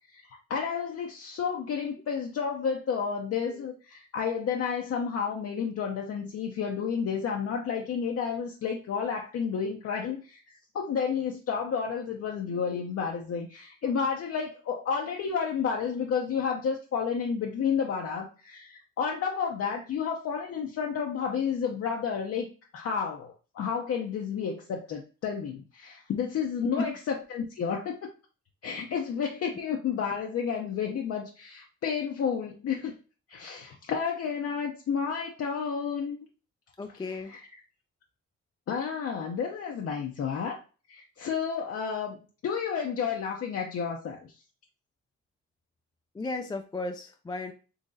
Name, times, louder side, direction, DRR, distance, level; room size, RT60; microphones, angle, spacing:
voice 1, 0.1-22.5 22.7-28.0 28.6-32.9 33.3-36.2 37.0-37.5 38.7-40.6 40.9-42.2 42.4-44.3, left 6 dB, 50° left, 0.6 m, -31 dB
voice 2, 36.8-37.3 46.1-47.5, left 3 dB, 15° left, 0.3 m, -34 dB
3.9 x 2.9 x 2.6 m
cardioid pair, 90°, 30 cm